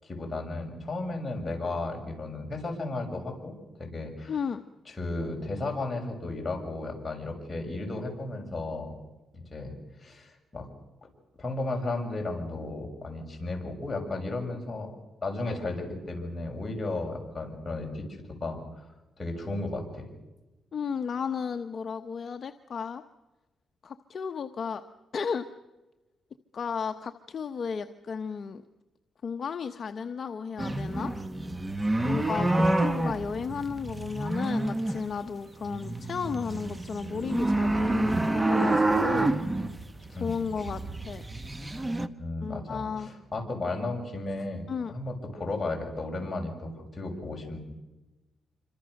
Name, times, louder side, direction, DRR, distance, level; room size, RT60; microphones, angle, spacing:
voice 1, 0.0-4.4 4.9-8.9 9.3-9.7 10.0-10.7 11.4-14.9 15.2-18.6 19.2-20.0 32.0-32.7 40.1-40.4 42.2-47.6, left 2 dB, 20° left, 1 dB, 7.0 m, -34 dB
voice 2, 4.3-4.6 20.7-23.0 23.8-24.8 25.1-25.5 26.5-28.6 29.2-31.1 32.0-39.6 40.1-41.2 42.4-43.1 44.7-44.9, left 6 dB, 50° left, 7 dB, 1.0 m, -34 dB
sound 1, 30.6-35.3 35.6-42.1, right 2 dB, 15° right, 1.3 m, -28 dB
27.5 x 25.5 x 6.6 m, 1.1 s
cardioid pair, 115°, 0 cm